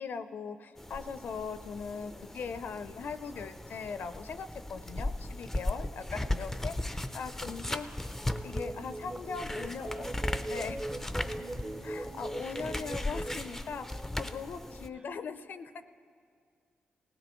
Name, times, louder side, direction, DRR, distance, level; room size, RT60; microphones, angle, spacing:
voice 1, 0.0-7.9 8.4-10.1 10.5-10.8 11.8-15.9, left 5 dB, 65° left, 11 dB, 0.5 m, -40 dB
sound 1, 0.8-14.9, left 1 dB, 10° left, 0.5 m, -37 dB
sound 2, 3.5-12.0, right 3 dB, 70° right, 1.3 m, -64 dB
voice 2, 7.6-8.9 9.3-10.1 10.5-11.8 14.9-15.2, right 2 dB, 45° right, 1 dB, 2.9 m, -59 dB
sound 3, 8.3-13.5, right 2 dB, 25° right, 0.7 m, -40 dB
19.0 x 16.5 x 3.0 m, 2.2 s
cardioid pair, 80°, 3 cm